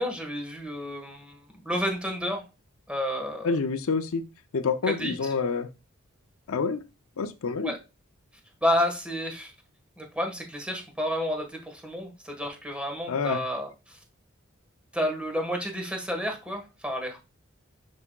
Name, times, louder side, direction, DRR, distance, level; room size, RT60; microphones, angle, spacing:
voice 1, 0.0-2.4 2.9-3.5 5.0-5.1 7.6-7.8 8.6-9.5 10.0-14.0 14.9-17.2, equal, 5° right, 2 dB, 1.3 m, -30 dB
voice 2, 3.4-4.2 4.5-5.7 6.5-6.8 7.2-7.7 13.1-13.4, left 4 dB, 80° left, 8 dB, 0.5 m, -27 dB
9.5 x 4.8 x 2.3 m, 0.28 s
head